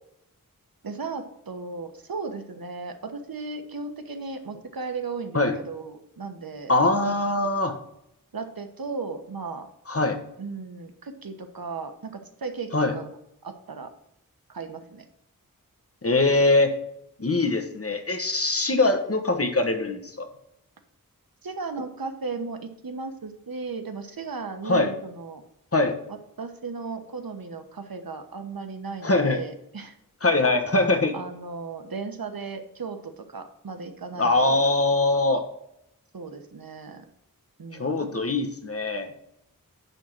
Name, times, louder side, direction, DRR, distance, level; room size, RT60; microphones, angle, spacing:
voice 1, 0.8-6.7 7.0-7.1 8.3-9.7 10.4-13.1 13.4-13.9 14.5-15.1 21.4-25.4 26.1-29.9 31.1-34.6 36.1-37.0 37.6-38.1, right 4 dB, 80° right, 7 dB, 1.1 m, -36 dB
voice 2, 6.7-7.7 9.9-10.2 12.7-12.9 16.0-16.7 17.2-20.3 24.6-24.9 25.7-26.0 29.0-29.4 30.2-31.1 34.2-35.4 37.7-39.1, left 2 dB, 40° left, 6 dB, 1.3 m, -22 dB
10.5 x 3.7 x 6.0 m, 0.80 s
wide cardioid pair, 55°, 35 cm